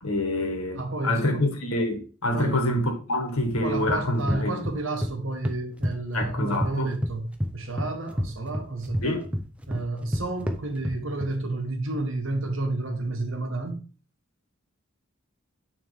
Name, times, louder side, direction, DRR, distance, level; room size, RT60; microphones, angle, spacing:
voice 1, 0.0-4.7 6.1-6.9 9.0-9.2, left 1 dB, 80° left, 1.7 m, -26 dB
voice 2, 0.8-1.5 2.3-2.6 3.6-7.3 7.5-9.2 9.7-13.8, right 2 dB, 65° right, 1.2 m, -31 dB
sound 1, 3.5-5.1 5.4-6.7 7.0-11.3, equal, 5° right, 0.5 m, -30 dB
9.3 x 3.5 x 3.4 m
head